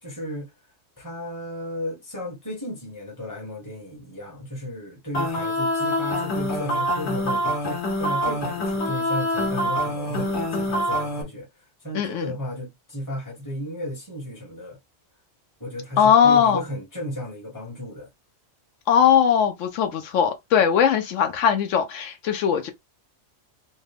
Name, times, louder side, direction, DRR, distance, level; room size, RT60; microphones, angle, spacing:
voice 1, 0.0-0.5 1.0-14.8 15.6-18.1, equal, 15° left, 1.1 m, -34 dB
sound 1, 5.1-11.2, equal, 60° left, 1.2 m, -25 dB
voice 2, 11.9-12.3 16.0-16.6 18.9-22.7, left 8 dB, 75° left, 0.9 m, -19 dB
3.2 x 2.1 x 3.4 m
omnidirectional pair, 1.3 m